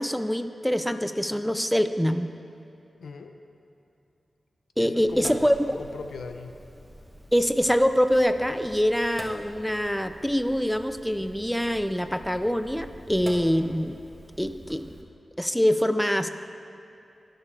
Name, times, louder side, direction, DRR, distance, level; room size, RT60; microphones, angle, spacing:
voice 1, 0.0-2.3 4.8-5.8 7.3-14.0 14.4-14.9 15.4-16.3, equal, 5° left, 9 dB, 0.5 m, -24 dB
voice 2, 3.0-3.4 4.8-6.5, left 4 dB, 90° left, 6 dB, 0.6 m, -39 dB
Sink (filling or washing), 5.1-15.0, equal, 20° right, 1.5 m, -45 dB
18.5 x 6.5 x 3.7 m, 2.8 s
cardioid pair, 55°, 0 cm